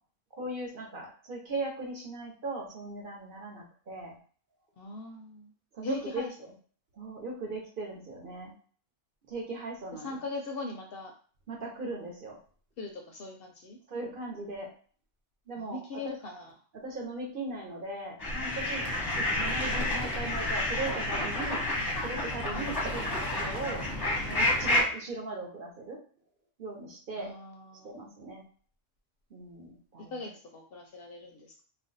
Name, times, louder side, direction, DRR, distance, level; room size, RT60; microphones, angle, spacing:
voice 1, 0.3-4.2 5.7-6.2 7.0-8.5 9.3-10.1 11.5-12.4 13.9-14.7 15.5-16.1 16.8-18.8 19.1-21.7 22.0-23.8 24.2-26.0 26.6-27.3 27.8-28.4 29.3-30.1, right 2 dB, 50° right, -1 dB, 0.9 m, -38 dB
voice 2, 4.8-5.5 5.8-6.5 9.9-11.1 12.8-13.8 15.6-16.6 22.5-22.9 27.1-28.1 30.0-31.6, left 3 dB, 60° left, 2 dB, 0.7 m, -40 dB
sound 1, 18.2-24.8, left 1 dB, 25° left, 0.6 m, -30 dB
2.5 x 2.2 x 3.8 m, 0.43 s
omnidirectional pair, 1.2 m